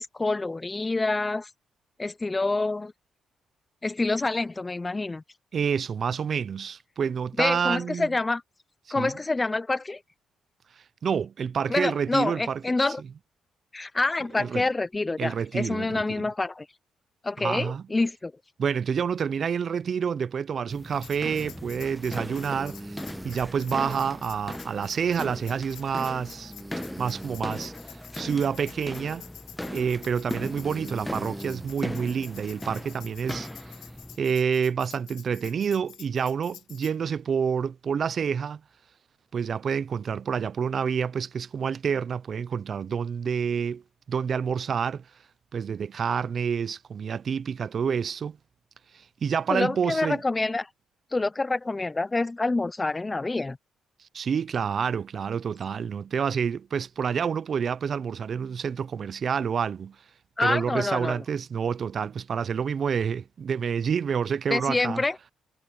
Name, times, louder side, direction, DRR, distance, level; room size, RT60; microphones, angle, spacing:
voice 1, 0.0-1.5 2.0-2.9 3.8-5.2 7.4-8.4 8.9-10.0 11.7-13.0 13.7-16.7 17.2-18.3 49.5-50.7 51.1-53.6 60.4-61.2 64.5-65.3, left 3 dB, 20° left, 0.5 m, -27 dB
voice 2, 5.5-8.1 9.0-9.1 11.0-12.6 14.4-14.6 15.2-16.3 17.4-17.8 18.6-22.9 23.2-26.5 27.0-27.7 28.1-29.3 29.6-33.5 34.2-38.6 39.3-43.8 44.1-45.0 45.5-48.4 48.9-50.2 54.1-60.0 60.4-65.0, right 7 dB, 55° right, 0.5 m, -28 dB
sound 1, 20.7-34.2, left 1 dB, 5° left, 1.1 m, -38 dB
Tambourine, 21.0-37.0, left 12 dB, 90° left, 1.3 m, -49 dB
sound 2, 21.5-34.3, right 1 dB, 10° right, 2.5 m, -46 dB
cardioid pair, 85°, 0 cm